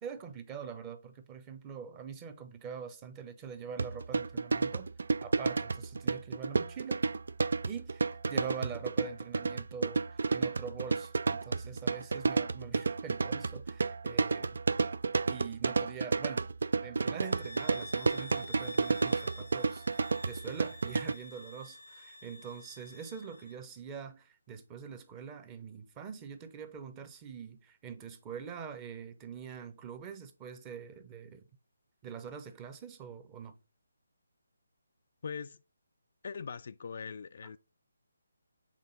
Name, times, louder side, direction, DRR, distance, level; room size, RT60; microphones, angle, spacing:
voice 1, 0.0-7.1 7.7-14.6 15.2-16.5 16.8-31.5 32.0-33.6, right 7 dB, 20° right, 0.8 m, -44 dB
sound 1, 3.8-21.1, right 4 dB, 60° right, 0.3 m, -31 dB
sound 2, 17.2-23.6, left 2 dB, 75° left, 0.6 m, -49 dB
voice 2, 35.2-35.6 36.2-37.6, left 6 dB, 45° left, 0.3 m, -41 dB
7.5 x 3.7 x 3.9 m
figure-of-eight pair, 145°, 0 cm